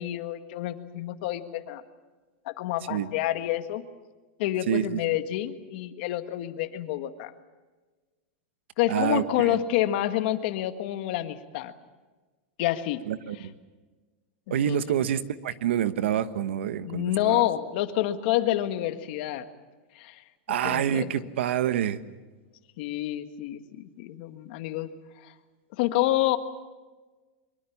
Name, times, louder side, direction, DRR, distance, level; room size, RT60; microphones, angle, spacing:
voice 1, 0.0-1.8 2.4-3.8 4.4-7.3 8.8-11.7 12.6-13.0 13.4-13.5 14.5-14.8 16.8-19.4 19.9-20.2 20.6-21.2 22.8-24.9 25.8-26.4, left 13 dB, 55° left, 9 dB, 1.7 m, -28 dB
voice 2, 4.7-5.0 8.9-9.5 13.1-13.5 14.5-17.4 20.5-22.0, right 10 dB, 85° right, 13 dB, 1.2 m, -27 dB
23.5 x 23.5 x 7.3 m, 1.3 s
supercardioid pair, 160°, 6 cm